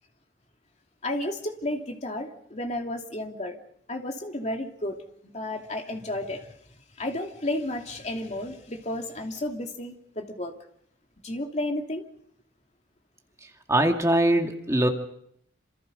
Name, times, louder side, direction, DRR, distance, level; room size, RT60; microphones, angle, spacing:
voice 1, 1.0-3.6 3.9-5.0 5.3-6.5 7.0-10.5 11.2-12.0, left 1 dB, 40° left, 3 dB, 2.8 m, -32 dB
voice 2, 13.7-14.9, right 1 dB, 15° right, 3 dB, 2.2 m, -22 dB
28.0 x 27.5 x 5.3 m, 0.71 s
head